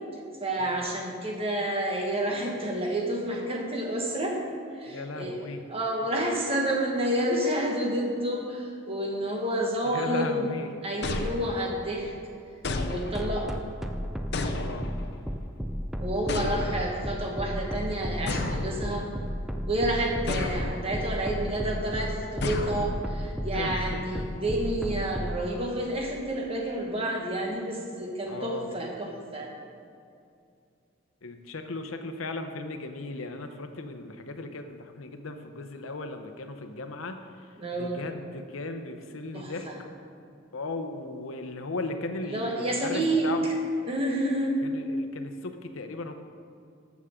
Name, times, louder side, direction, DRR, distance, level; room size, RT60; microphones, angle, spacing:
voice 1, 0.4-4.4 4.7-10.5 10.8-12.1 12.8-13.5 16.0-19.1 19.7-29.5 37.6-38.0 39.3-39.8 42.3-43.5 43.9-44.5, right 1 dB, 30° right, 0 dB, 1.4 m, -29 dB
voice 2, 4.9-5.6 9.8-10.7 14.5-14.9 16.5-16.8 23.5-24.3 28.3-28.7 31.2-37.5 37.8-39.7 40.5-43.5 44.6-46.1, left 2 dB, 90° left, 7 dB, 0.8 m, -36 dB
sound 1, 11.0-11.9 12.6-13.5 14.3-15.2 16.3-17.1 18.3-19.3 20.3-21.0 22.4-23.3, left 2 dB, 55° left, 0.7 m, -32 dB
sound 2, 13.1-25.4, equal, ahead, 0.4 m, -32 dB
13.5 x 7.3 x 3.7 m, 2.4 s
head